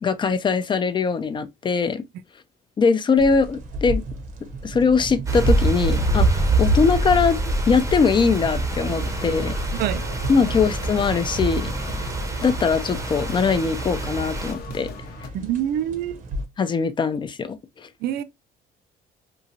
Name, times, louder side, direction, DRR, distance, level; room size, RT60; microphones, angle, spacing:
voice 1, 0.0-2.0 2.8-4.0 4.6-7.4 7.7-9.5 10.3-11.7 12.4-14.9 16.6-17.9, left 5 dB, 30° left, 0.4 m, -21 dB
sound 1, 3.2-16.5, right 1 dB, 50° right, 0.8 m, -34 dB
sound 2, 5.3-14.5, right 2 dB, 20° right, 0.7 m, -25 dB
sound 3, 8.3-15.3, left 5 dB, 65° left, 0.6 m, -40 dB
voice 2, 15.3-16.2 18.0-18.2, right 11 dB, 70° right, 0.4 m, -25 dB
2.9 x 2.4 x 2.6 m
cardioid pair, 110°, 17 cm